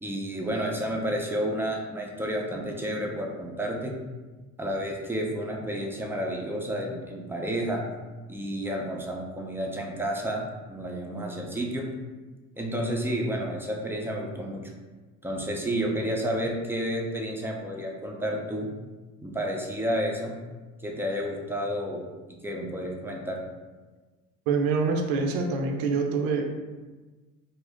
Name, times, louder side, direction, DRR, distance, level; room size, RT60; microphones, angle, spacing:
voice 1, 0.0-3.9 4.6-7.8 8.3-11.9 12.6-14.7 15.2-18.7 19.2-20.3 20.8-22.1 22.4-23.4, equal, 5° right, 0 dB, 0.5 m, -30 dB
voice 2, 24.5-26.5, right 4 dB, 60° right, 2 dB, 0.6 m, -25 dB
2.6 x 2.1 x 3.4 m, 1.3 s
hypercardioid pair, 65°, 41 cm